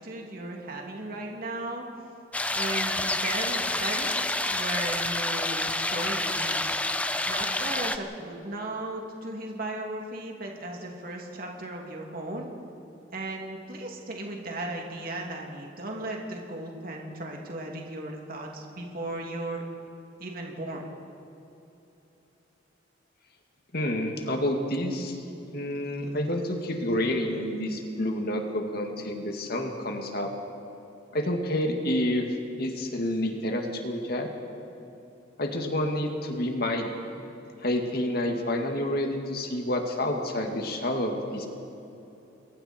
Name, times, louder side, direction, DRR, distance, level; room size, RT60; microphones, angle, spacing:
voice 1, 0.0-1.9 2.5-6.8 7.3-12.5 13.1-19.7 20.2-20.9, right 2 dB, 50° right, 0 dB, 2.8 m, -36 dB
sound 1, 2.3-8.0, left 2 dB, 5° left, 0.7 m, -28 dB
voice 2, 23.7-25.2 25.5-30.3 31.1-32.3 32.6-34.3 35.4-36.9 37.6-41.5, left 1 dB, 55° left, 3 dB, 2.1 m, -29 dB
28.5 x 22.0 x 4.5 m, 3.0 s
head